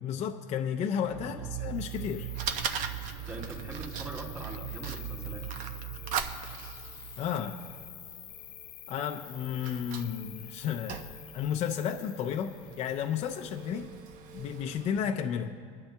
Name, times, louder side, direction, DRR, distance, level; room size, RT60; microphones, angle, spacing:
voice 1, 0.0-2.3 7.2-7.6 8.9-11.0 11.3-13.9 14.3-15.5, left 8 dB, 45° left, 3 dB, 0.6 m, -32 dB
sound 1, 1.0-8.3, right 14 dB, 80° right, 0.4 m, -41 dB
Fire, 1.6-15.0, right 7 dB, 55° right, 0.9 m, -41 dB
Cricket, 1.7-13.7, left 12 dB, 60° left, 1.1 m, -49 dB
voice 2, 3.3-5.4, right 1 dB, 15° right, 0 dB, 2.5 m, -42 dB
21.0 x 11.5 x 2.3 m, 2.3 s
supercardioid pair, 120°, 16 cm